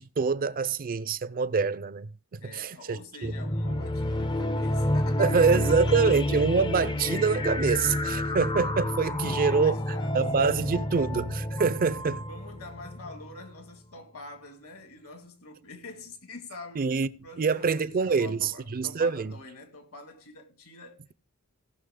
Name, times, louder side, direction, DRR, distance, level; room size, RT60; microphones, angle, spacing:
voice 1, 0.0-3.3 5.2-9.8 10.1-12.2 16.8-17.1 17.4-19.3, right 5 dB, 40° right, 0.4 m, -26 dB
voice 2, 2.4-6.0 9.2-10.8 12.3-16.9 17.2-21.1, left 3 dB, 70° left, 2.1 m, -45 dB
sound 1, 3.2-13.4, left 1 dB, 20° left, 0.5 m, -29 dB
17.5 x 6.1 x 3.7 m
head